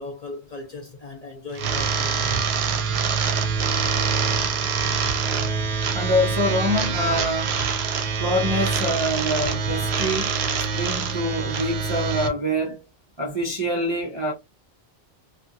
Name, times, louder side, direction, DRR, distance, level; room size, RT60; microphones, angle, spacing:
voice 1, 0.0-2.4, left 3 dB, 45° left, 0.6 m, -37 dB
sound 1, 1.6-12.3, right 5 dB, 70° right, 0.8 m, -25 dB
voice 2, 5.9-7.6 8.2-10.3 10.7-12.8 13.2-14.3, equal, 35° right, 0.4 m, -25 dB
2.7 x 2.4 x 2.5 m
omnidirectional pair, 1.2 m